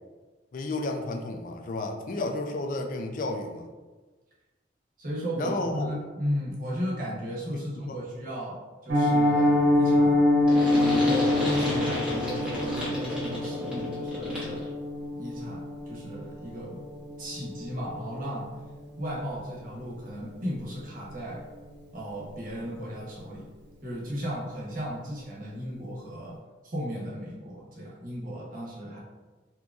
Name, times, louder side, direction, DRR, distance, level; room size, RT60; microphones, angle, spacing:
voice 1, 0.5-3.7 5.4-5.9 7.5-8.0, left 2 dB, 45° left, 3 dB, 0.3 m, -32 dB
voice 2, 5.0-10.3 10.7-14.7 15.2-16.8 17.2-18.5 19.0-21.5 21.9-23.5 23.8-26.4 26.6-29.0, equal, 45° right, -5 dB, 0.9 m, -35 dB
Piano, 8.9-19.8 20.1-20.3 20.6-20.7 21.1-21.3 21.7-21.8, left 1 dB, 80° right, 0.8 m, -26 dB
sound 1, 10.5-14.7, equal, 5° right, 0.8 m, -32 dB
3.7 x 2.9 x 2.4 m, 1.3 s
head